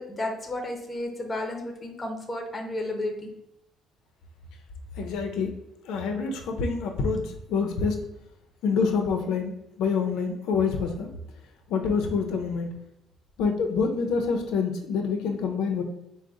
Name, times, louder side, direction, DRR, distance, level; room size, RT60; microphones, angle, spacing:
voice 1, 0.0-3.3, left 1 dB, 15° left, 1 dB, 0.6 m, -32 dB
voice 2, 5.0-5.5 5.8-8.0 8.6-11.1 11.7-12.7 13.4-15.8, left 5 dB, 80° left, 4 dB, 0.6 m, -26 dB
4.8 x 2.1 x 3.9 m, 0.83 s
cardioid pair, 170°, 0 cm